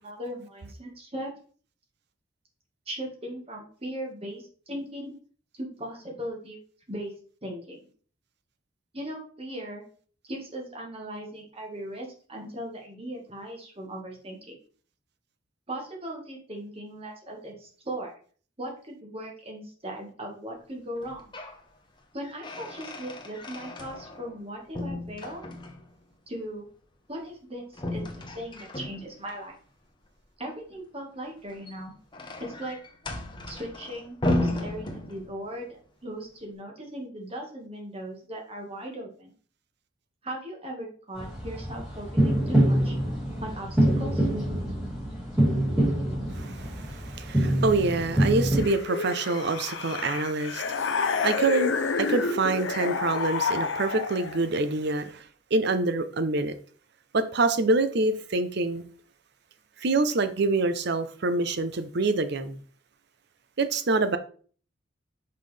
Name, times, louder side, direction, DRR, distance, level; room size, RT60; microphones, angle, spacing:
voice 1, 0.0-1.3 2.9-5.2 5.5-6.6 6.9-7.1 7.4-7.9 8.9-9.8 10.2-14.6 15.7-18.1 18.6-21.3 22.1-25.4 26.3-26.7 27.1-29.5 30.4-32.0 32.4-32.8 33.5-39.3 40.2-43.0 43.4-44.3, right 1 dB, 30° right, 1.7 m, -38 dB
sound 1, 21.0-21.6 22.0-24.4 24.7-25.9 27.7-29.4 31.4-35.5, left 1 dB, 25° left, 1.0 m, -34 dB
sound 2, 41.1-48.6, right 1 dB, 5° right, 2.7 m, -25 dB
voice 2, 46.3-55.3 55.5-56.5 57.1-58.8 59.8-62.6 63.6-64.2, right 3 dB, 60° right, 0.7 m, -26 dB
sound 3, 48.6-54.4, left 4 dB, 70° left, 0.6 m, -29 dB
5.9 x 5.4 x 3.3 m
head